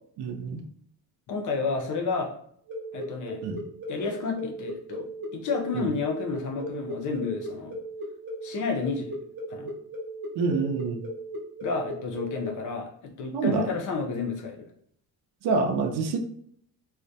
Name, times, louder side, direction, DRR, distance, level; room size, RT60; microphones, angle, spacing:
voice 1, 0.2-0.6 3.4-3.6 5.7-5.9 10.3-11.0 13.3-13.7 15.4-16.2, right 4 dB, 75° right, 5 dB, 0.5 m, -27 dB
voice 2, 1.3-2.3 2.9-3.4 3.9-5.1 5.3-7.7 8.4-9.2 9.5-9.7 11.6-14.7, left 4 dB, 50° left, 1 dB, 0.5 m, -31 dB
sound 1, 2.7-12.5, equal, 30° right, 0.6 m, -36 dB
2.2 x 2.1 x 2.6 m, 0.65 s
cardioid pair, 175°, 39 cm